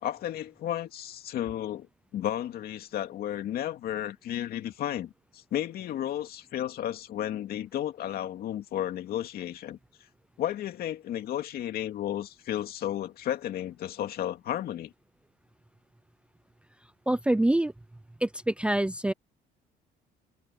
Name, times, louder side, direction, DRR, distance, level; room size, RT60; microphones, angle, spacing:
voice 1, 0.0-1.9 2.1-9.8 10.4-14.9, left 11 dB, 65° left, 2.4 m, -33 dB
voice 2, 17.1-17.7 18.2-19.1, right 1 dB, 5° right, 0.5 m, -25 dB
cardioid pair, 110°, 17 cm